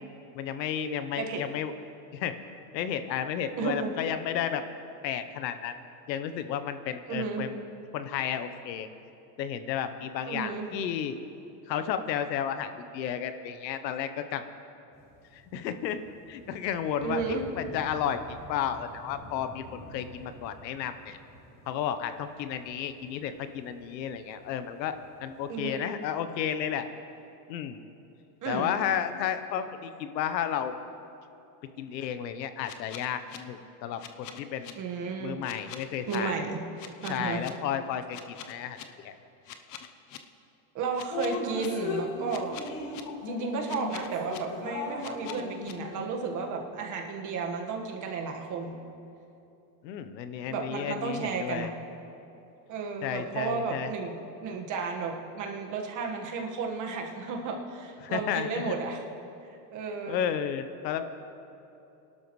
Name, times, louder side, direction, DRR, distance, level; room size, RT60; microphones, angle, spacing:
voice 1, 0.3-1.7 2.1-2.3 2.7-4.6 5.0-5.7 6.1-7.6 7.9-8.9 9.4-11.2 11.7-14.5 15.3-16.0 16.3-21.2 21.7-26.9 27.5-27.8 28.5-30.8 31.8-34.7 35.2-36.3 37.1-38.2 38.5-39.1 49.8-51.7 53.0-53.9 58.0-58.7 60.1-61.0, left 9 dB, 90° left, 10 dB, 1.0 m, -32 dB
voice 2, 3.6-3.9 7.1-7.5 10.3-10.7 17.0-17.5 25.5-25.9 28.4-28.7 34.7-35.4 36.1-36.6 37.0-37.5 40.7-42.6 43.2-48.8 50.5-51.7 52.7-59.0 59.7-60.2, right 5 dB, 35° right, 2 dB, 1.6 m, -33 dB
sound 1, 14.9-25.6, right 1 dB, 5° right, 3.1 m, -51 dB
sound 2, 32.6-33.4 34.0-34.7 35.4-36.2 36.8-37.5 38.1-38.8 39.5-40.2 40.9-41.7 42.3-43.0 43.7-44.4 45.0-45.7, left 11 dB, 35° left, 0.7 m, -44 dB
Drip, 41.1-46.3, left 4 dB, 60° left, 2.1 m, -36 dB
23.0 x 12.0 x 3.2 m, 2.8 s
supercardioid pair, 135°, 49 cm